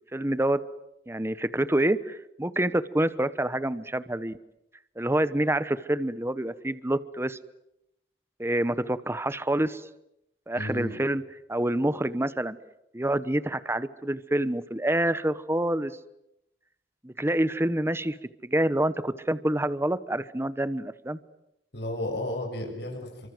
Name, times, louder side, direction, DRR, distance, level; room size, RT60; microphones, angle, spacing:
voice 1, 0.1-0.6 1.1-4.4 5.0-7.4 8.4-9.8 10.5-11.2 11.5-12.6 12.9-15.9 17.0-18.2 18.4-21.2, right 1 dB, 15° right, 14 dB, 1.0 m, -27 dB
voice 2, 10.5-11.0 21.7-23.3, left 1 dB, 70° left, 2 dB, 7.4 m, -33 dB
30.0 x 25.0 x 7.8 m, 0.83 s
head